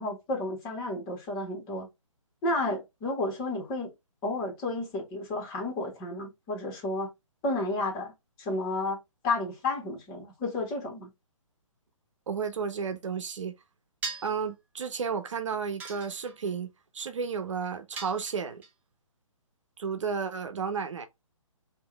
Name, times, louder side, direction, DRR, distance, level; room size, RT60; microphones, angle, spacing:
voice 1, 0.0-1.9 2.4-3.9 4.2-7.1 7.4-8.1 8.4-9.0 9.2-11.1, left 2 dB, 25° left, 1.8 m, -31 dB
voice 2, 12.3-13.6 14.2-18.6 19.8-21.1, right 6 dB, 65° right, 0.9 m, -32 dB
sound 1, 14.0-14.4 15.8-16.5 18.0-18.7, right 4 dB, 10° right, 0.6 m, -39 dB
3.5 x 2.9 x 3.4 m
figure-of-eight pair, 140°, 17 cm